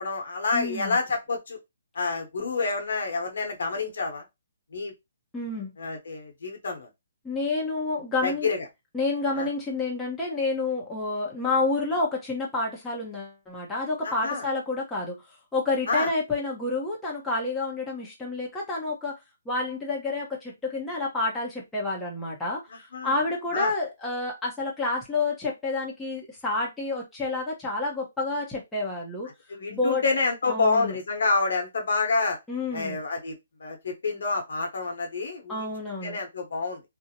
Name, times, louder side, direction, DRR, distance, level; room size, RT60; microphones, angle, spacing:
voice 1, 0.0-1.6 1.9-4.2 4.7-4.9 5.8-6.9 8.2-8.6 9.4-9.5 14.0-14.4 15.9-16.1 22.9-23.1 23.5-23.7 29.5-32.4 32.7-35.7 36.0-36.8, left 3 dB, 70° left, 0.9 m, -28 dB
voice 2, 0.5-1.0 5.3-5.7 7.2-8.5 8.9-19.1 19.5-29.3 29.7-30.0 30.5-30.9 32.5-33.0 35.5-36.2, left 3 dB, 5° left, 0.7 m, -29 dB
2.5 x 2.0 x 2.8 m
hypercardioid pair, 160°, 0 cm